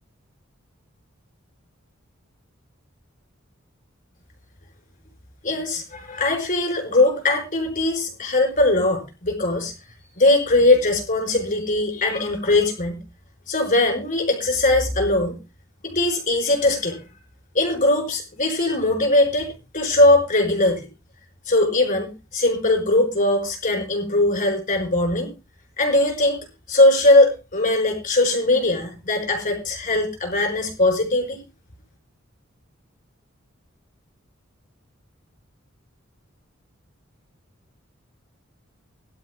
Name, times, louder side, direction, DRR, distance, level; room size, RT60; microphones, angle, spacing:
voice 1, 5.4-9.7 10.2-13.0 13.5-15.4 15.8-17.0 17.5-20.9 21.5-25.3 25.8-31.4, left 2 dB, 40° left, 2 dB, 4.9 m, -20 dB
22.0 x 12.0 x 2.2 m, 0.29 s
head